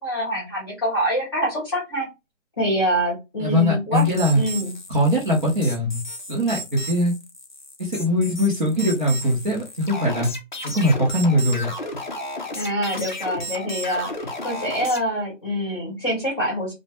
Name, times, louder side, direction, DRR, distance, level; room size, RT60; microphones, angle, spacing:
voice 1, 0.0-2.1 2.6-4.0 4.3-4.7 12.5-14.1 14.4-16.7, equal, 20° left, -5 dB, 0.8 m, -25 dB
voice 2, 3.4-4.4 4.9-6.0 6.3-7.1 7.8-10.3 10.6-11.7, equal, 40° right, -4 dB, 0.7 m, -21 dB
sound 1, 3.9-15.0, equal, 40° left, 0.4 m, -33 dB
2.3 x 2.1 x 2.9 m, 0.24 s
hypercardioid pair, 165°, 38 cm